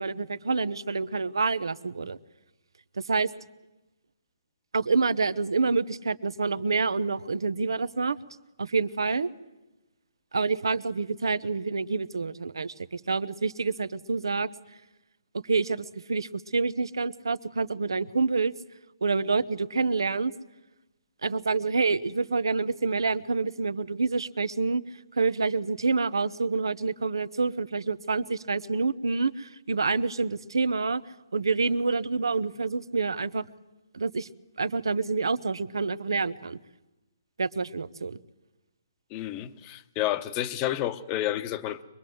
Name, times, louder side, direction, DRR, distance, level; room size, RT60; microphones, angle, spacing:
voice 1, 0.0-2.2 3.0-3.3 4.7-8.2 8.6-9.3 10.3-14.5 15.3-18.5 19.0-20.3 21.2-24.8 25.2-31.0 31.3-33.4 33.9-34.3 34.6-36.6 37.4-38.2, right 4 dB, 90° right, 15 dB, 1.0 m, -27 dB
voice 2, 39.1-41.8, left 13 dB, 20° left, 12 dB, 0.9 m, -30 dB
24.5 x 21.0 x 7.8 m, 1.0 s
hypercardioid pair, 160°, 2 cm